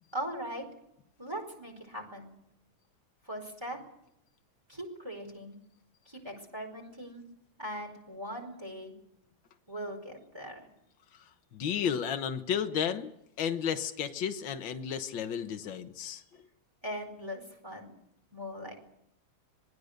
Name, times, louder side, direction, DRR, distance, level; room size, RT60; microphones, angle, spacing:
voice 1, 0.1-0.6 1.2-2.3 3.2-3.8 4.7-5.6 6.0-7.2 7.6-8.9 9.7-10.6 16.8-17.9 18.3-18.7, equal, 10° right, 2 dB, 4.7 m, -40 dB
voice 2, 11.5-13.1 13.4-16.2, left 8 dB, 65° left, 7 dB, 1.9 m, -32 dB
26.0 x 20.5 x 6.7 m, 0.78 s
omnidirectional pair, 2.4 m